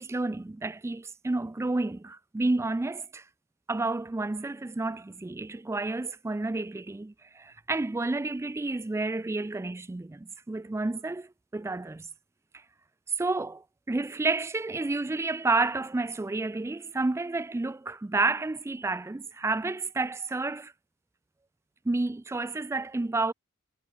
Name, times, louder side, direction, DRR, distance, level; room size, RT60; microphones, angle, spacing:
voice 1, 0.0-3.2 3.7-12.1 13.2-20.7 21.8-23.3, right 3 dB, 10° right, 0.3 m, -30 dB
head